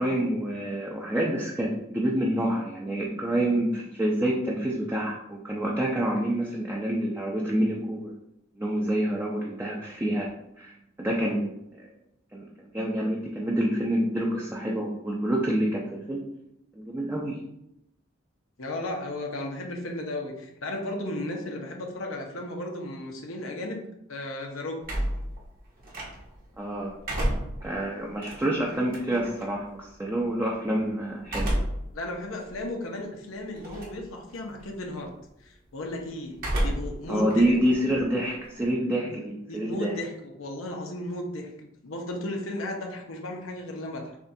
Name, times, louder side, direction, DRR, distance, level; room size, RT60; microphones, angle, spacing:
voice 1, 0.0-8.1 8.6-11.9 12.3-16.3 16.8-17.4 26.6-27.0 27.6-31.5 37.1-39.9, right 1 dB, 10° right, -2 dB, 0.5 m, -27 dB
voice 2, 18.6-24.8 31.9-35.1 35.4-37.5 38.9-39.1 39.5-44.2, left 1 dB, 85° left, 1 dB, 0.9 m, -35 dB
sound 1, 24.8-26.5 26.9-29.4 31.2-31.9 32.4-32.5 33.6-34.1 34.4-34.8 36.3-37.0 37.3-38.7, right 1 dB, 45° right, 1.2 m, -30 dB
7.0 x 2.4 x 2.7 m, 0.80 s
head